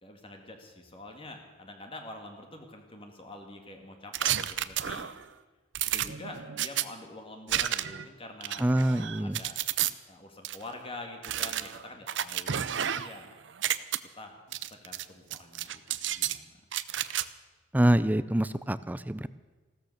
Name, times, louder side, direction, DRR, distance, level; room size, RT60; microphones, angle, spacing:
voice 1, 0.0-5.1 5.9-9.6 10.1-13.3 14.2-14.4 14.7-15.8 16.1-16.6, left 2 dB, 30° left, 4 dB, 1.9 m, -46 dB
sound 1, 4.1-5.2 5.7-6.8 7.5-8.0 8.4-9.9 10.4-10.6 11.2-13.2 13.5-14.0 14.5-15.0 15.3-16.4 16.7-17.2, right 11 dB, 65° right, 0.6 m, -31 dB
voice 2, 8.6-9.4 17.7-19.3, right 1 dB, 10° right, 15 dB, 0.4 m, -25 dB
16.0 x 13.5 x 6.5 m, 1.3 s
head